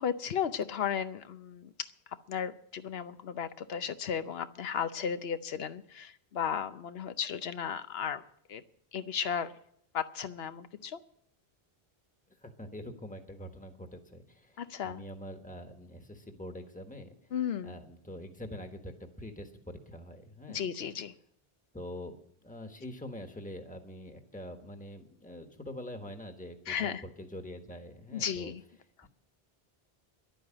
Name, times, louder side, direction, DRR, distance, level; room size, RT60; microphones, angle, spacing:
voice 1, 0.0-1.7 2.3-8.2 8.5-8.6 8.9-9.5 9.9-11.0 14.6-15.0 17.3-17.8 20.5-21.1 26.7-27.0 28.1-28.6, left 8 dB, 75° left, 12 dB, 1.0 m, -34 dB
voice 2, 12.4-17.3 17.6-20.6 21.7-22.1 22.4-28.5 29.0-29.1, left 1 dB, 10° left, 5 dB, 1.3 m, -45 dB
11.5 x 9.0 x 8.9 m, 0.69 s
omnidirectional pair, 1.0 m